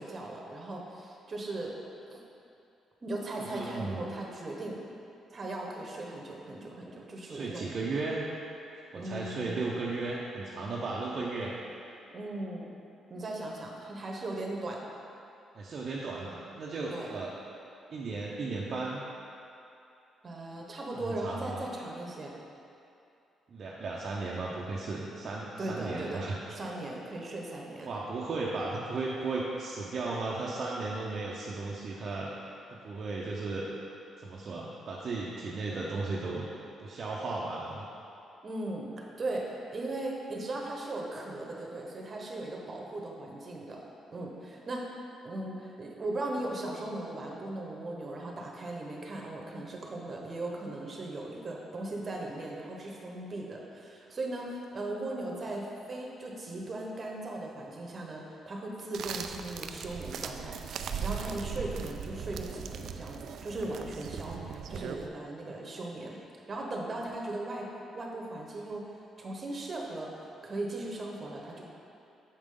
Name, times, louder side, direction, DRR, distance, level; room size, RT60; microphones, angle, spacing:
voice 1, 0.0-1.8 2.1-2.2 3.0-4.8 5.3-7.7 8.9-9.6 12.1-12.7 13.1-14.8 16.9-17.1 20.2-22.3 25.6-27.9 38.4-44.9 45.2-60.6 61.0-66.2 66.5-67.7 67.9-70.2 70.4-71.6, right 2 dB, 35° right, -1 dB, 1.1 m, -38 dB
voice 2, 3.4-4.1 7.2-8.2 8.9-11.6 15.5-17.3 17.9-19.0 21.0-21.6 23.5-26.4 27.8-32.3 32.7-33.6 34.2-36.5 36.8-37.8, right 3 dB, 50° right, -5 dB, 0.7 m, -35 dB
sound 1, 58.9-65.1, right 7 dB, 70° right, 0.3 m, -39 dB
7.2 x 5.1 x 3.8 m, 2.7 s
cardioid pair, 90°, 0 cm